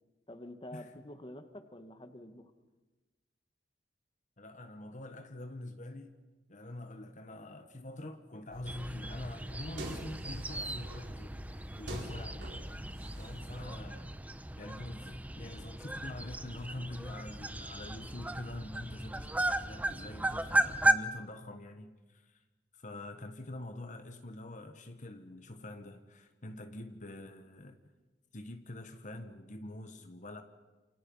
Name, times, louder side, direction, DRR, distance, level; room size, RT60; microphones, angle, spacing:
voice 1, 0.3-2.5, left 1 dB, 30° left, 8 dB, 1.7 m, -48 dB
voice 2, 4.4-6.2 6.5-11.4 11.8-12.5 13.2-14.2 14.6-22.4 22.7-27.8 28.3-30.4, left 1 dB, 45° left, 7 dB, 1.5 m, -45 dB
sound 1, 8.5-13.6, right 1 dB, 80° right, 4.8 m, -45 dB
sound 2, 8.7-20.9, right 1 dB, 10° right, 1.0 m, -35 dB
28.5 x 28.0 x 5.6 m, 1.2 s
head